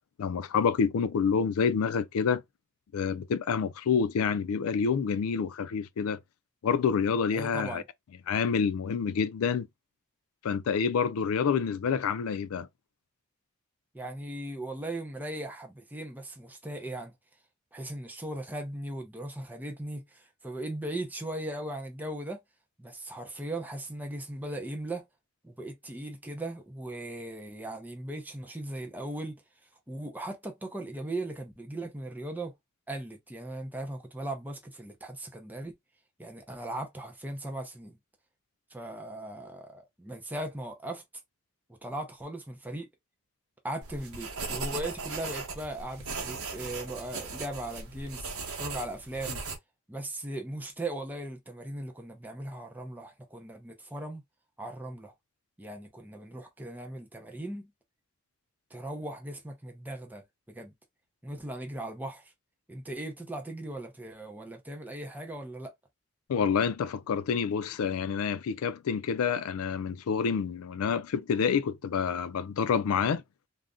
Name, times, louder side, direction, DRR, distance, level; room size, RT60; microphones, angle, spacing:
voice 1, 0.2-2.4 2.9-6.2 6.6-7.8 8.3-9.7 10.4-12.7 66.3-73.2, left 6 dB, 85° left, 0.4 m, -28 dB
voice 2, 7.3-7.8 13.9-17.1 17.7-22.4 22.8-25.1 25.4-29.4 29.9-32.5 32.9-35.8 36.2-38.0 38.7-41.0 41.7-42.9 43.6-48.3 48.6-49.4 49.9-54.2 54.6-55.1 55.6-57.7 58.7-60.7 61.2-62.3 62.7-65.7, right 1 dB, 10° right, 0.6 m, -38 dB
sound 1, 43.8-49.6, right 4 dB, 85° right, 0.9 m, -38 dB
2.5 x 2.1 x 3.5 m
head